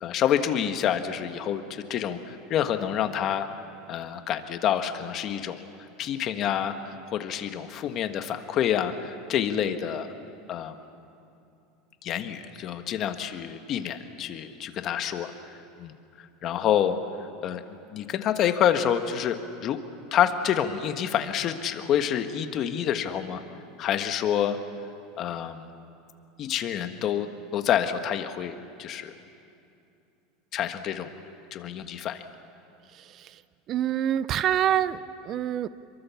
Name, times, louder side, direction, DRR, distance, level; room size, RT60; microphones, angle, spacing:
voice 1, 0.0-3.5 3.9-5.6 6.0-10.1 10.5-10.7 12.0-15.3 15.8-19.8 20.1-23.4 23.8-24.6 25.2-25.7 26.4-29.1 30.5-31.1 31.5-32.2, left 9 dB, 40° left, 8 dB, 1.5 m, -28 dB
voice 2, 32.9-33.4 33.7-35.7, right 10 dB, 35° right, 16 dB, 0.5 m, -26 dB
27.5 x 23.0 x 7.2 m, 2.6 s
supercardioid pair, 145°, 0 cm